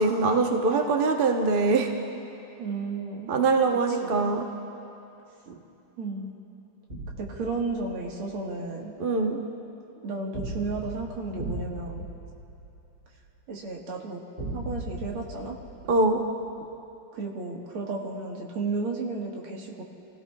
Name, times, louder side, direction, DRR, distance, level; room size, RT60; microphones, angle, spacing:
voice 1, 0.0-1.9 3.3-4.5 9.0-9.4 15.9-16.2, right 3 dB, 50° right, 2 dB, 0.6 m, -23 dB
voice 2, 2.6-3.4 3.9-4.2 6.0-6.4 7.2-8.9 10.0-12.1 13.5-14.2 14.5-15.6 17.1-19.8, right 3 dB, 85° right, -1 dB, 2.4 m, -33 dB
sound 1, 6.9-8.3 10.3-13.3 14.4-16.5, right 2 dB, 30° right, 2.8 m, -38 dB
28.0 x 16.0 x 2.3 m, 2.9 s
omnidirectional pair, 2.3 m